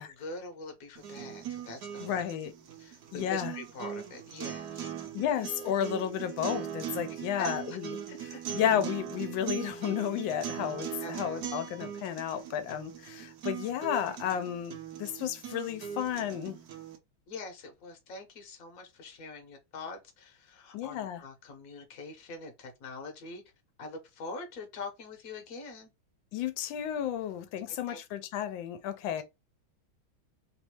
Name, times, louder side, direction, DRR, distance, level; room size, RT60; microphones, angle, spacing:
voice 1, 0.0-2.3 2.8-4.9 7.1-7.8 8.1-8.2 11.0-11.1 11.4-11.6 17.3-23.4 23.8-25.9 27.7-28.0 29.2-29.3, left 3 dB, 55° left, 1.1 m, -43 dB
sound 1, 1.0-17.0, right 9 dB, 65° right, 1.1 m, -40 dB
voice 2, 2.0-2.5 3.1-3.6 5.1-7.9 8.2-16.6 20.7-21.2 26.3-29.2, left 10 dB, 75° left, 1.3 m, -32 dB
3.4 x 2.6 x 2.9 m
omnidirectional pair, 2.2 m